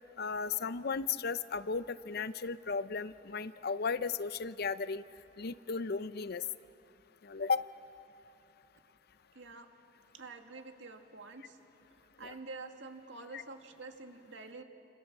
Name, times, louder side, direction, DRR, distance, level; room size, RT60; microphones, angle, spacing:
voice 1, 0.2-5.0 5.4-6.4 7.2-7.7 12.2-12.3 13.3-13.4, left 5 dB, 60° left, 14 dB, 0.7 m, -35 dB
voice 2, 9.3-9.7 10.1-11.6 12.2-14.6, right 3 dB, 90° right, 5 dB, 2.1 m, -47 dB
29.0 x 26.5 x 7.4 m, 2.9 s
head